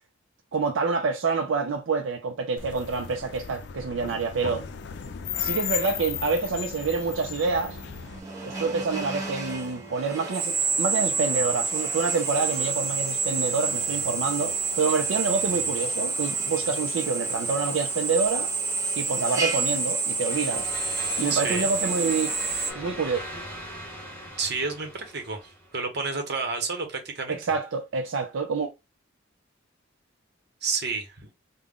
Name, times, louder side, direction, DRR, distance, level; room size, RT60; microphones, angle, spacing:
voice 1, 0.5-4.7 5.4-7.8 8.4-18.5 19.0-20.7 21.2-22.3 22.7-23.2 27.3-28.7, right 4 dB, 75° right, 0.5 m, -27 dB
sound 1, 2.6-8.2, left 9 dB, 60° left, 0.4 m, -35 dB
Drill, 5.3-22.7, right 4 dB, 15° right, 0.9 m, -29 dB
sound 2, 20.3-25.8, equal, 10° left, 1.1 m, -40 dB
voice 2, 21.3-21.7 24.4-27.4 30.6-31.3, right 4 dB, 55° right, 1.0 m, -30 dB
3.6 x 2.2 x 3.6 m
head